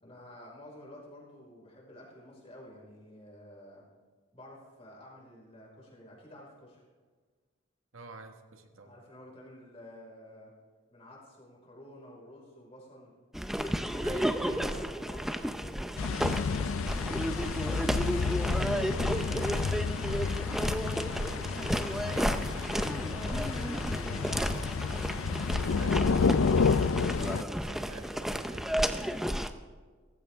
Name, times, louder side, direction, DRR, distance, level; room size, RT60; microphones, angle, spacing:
voice 1, 0.0-3.8 4.3-6.8 8.8-10.5 10.9-13.1 13.6-17.5 18.5-22.4 22.9-24.3, left 1 dB, 30° left, -3 dB, 5.0 m, -51 dB
voice 2, 7.9-8.9 14.0-14.8 22.0-24.0 25.5-29.1, right 2 dB, 80° right, 5 dB, 1.7 m, -48 dB
sound 1, 13.3-29.5, equal, ahead, 0.5 m, -32 dB
sound 2, 16.0-27.4, left 5 dB, 80° left, 0.5 m, -30 dB
18.0 x 15.5 x 3.6 m, 1.5 s
head